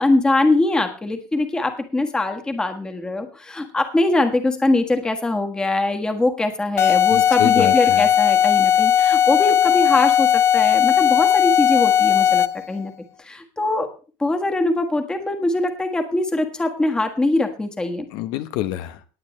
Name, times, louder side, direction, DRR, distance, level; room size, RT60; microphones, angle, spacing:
voice 1, 0.0-12.9 13.2-13.9 14.2-18.0, left 2 dB, 10° left, 6 dB, 1.6 m, -22 dB
sound 1, 6.8-12.7, left 10 dB, 30° left, 0.5 m, -17 dB
voice 2, 7.1-8.0 18.1-19.1, left 13 dB, 60° left, 11 dB, 0.9 m, -27 dB
19.0 x 8.7 x 3.2 m, 0.35 s
cardioid pair, 160°, 8 cm